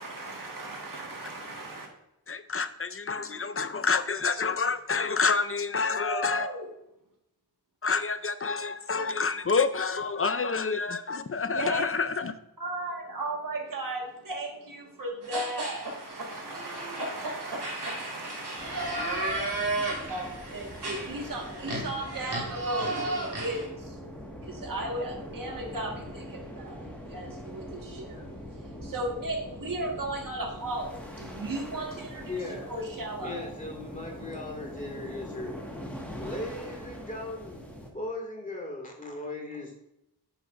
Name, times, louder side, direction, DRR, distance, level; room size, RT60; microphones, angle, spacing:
voice 1, 0.0-1.9 5.9-6.7 11.5-11.8 12.6-19.6 20.1-33.5 34.0-34.4, right 1 dB, 55° right, 0 dB, 1.7 m, -36 dB
voice 2, 2.3-6.5 7.8-12.3, left 4 dB, 35° left, 12 dB, 0.5 m, -28 dB
sound 1, 15.2-23.7, right 2 dB, 75° right, 2.6 m, -34 dB
sound 2, 18.6-37.9, equal, 5° left, 1.6 m, -43 dB
voice 3, 32.2-32.6 33.2-35.5 36.2-37.7 37.9-39.7, left 2 dB, 20° left, -1 dB, 2.1 m, -37 dB
9.6 x 7.0 x 2.5 m, 0.83 s
wide cardioid pair, 85°, 39 cm